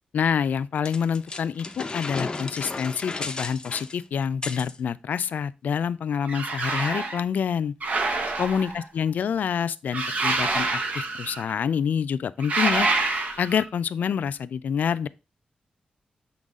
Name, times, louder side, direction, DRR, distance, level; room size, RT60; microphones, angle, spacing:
voice 1, 0.1-7.7 8.4-12.9 13.4-15.1, left 7 dB, 80° left, 0.4 m, -27 dB
sound 1, 0.8-4.8, left 3 dB, 30° left, 0.7 m, -34 dB
sound 2, 6.2-7.2 7.8-8.8 9.9-11.5 12.4-13.6, right 3 dB, 60° right, 1.0 m, -26 dB
7.1 x 3.9 x 3.6 m
wide cardioid pair, 105°, 3 cm